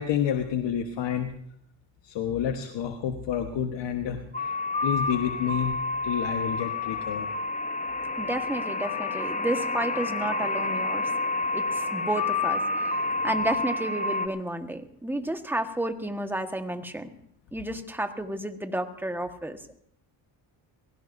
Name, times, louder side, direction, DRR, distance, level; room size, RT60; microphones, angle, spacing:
voice 1, 0.0-1.3 2.0-4.2 4.8-5.7 6.0-7.3, left 9 dB, 65° left, 5 dB, 1.3 m, -29 dB
sound 1, 4.3-14.3, left 3 dB, 15° left, 1.0 m, -29 dB
voice 2, 8.2-11.1 11.5-13.0 13.2-17.1 17.5-19.7, right 1 dB, 5° right, 7 dB, 1.4 m, -31 dB
22.5 x 16.5 x 2.7 m, 0.68 s
cardioid pair, 85°, 47 cm